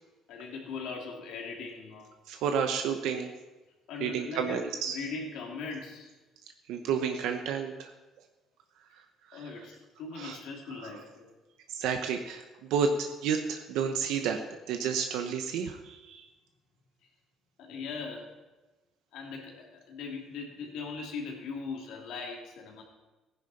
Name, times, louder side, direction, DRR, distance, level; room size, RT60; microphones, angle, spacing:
voice 1, 0.3-2.1 3.9-6.1 9.3-11.3 17.6-18.3 19.1-22.8, left 4 dB, 80° left, -1 dB, 2.9 m, -40 dB
voice 2, 2.3-3.3 4.0-5.0 6.7-7.9 9.3-9.4 10.2-10.4 11.7-14.4 14.7-16.2, right 6 dB, 80° right, 5 dB, 0.9 m, -31 dB
15.0 x 10.5 x 4.2 m, 1.2 s
cardioid pair, 125°, 0 cm